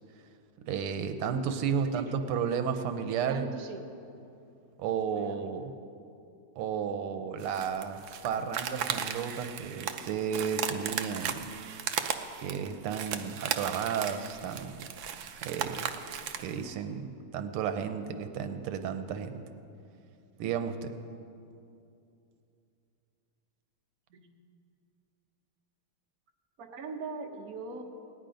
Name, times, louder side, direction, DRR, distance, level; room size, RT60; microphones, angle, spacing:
voice 1, 0.7-3.5 4.8-5.7 6.6-8.0 8.2-11.5 12.4-14.8 15.4-15.9 16.4-19.5 20.4-20.9, right 7 dB, 85° right, 8 dB, 1.7 m, -33 dB
voice 2, 3.3-3.8 5.1-5.4 24.1-24.3 26.6-27.8, right 4 dB, 50° right, 3 dB, 1.3 m, -41 dB
sound 1, 7.4-16.5, right 8 dB, 70° right, 0.9 m, -36 dB
18.0 x 10.5 x 5.1 m, 2.7 s
omnidirectional pair, 2.4 m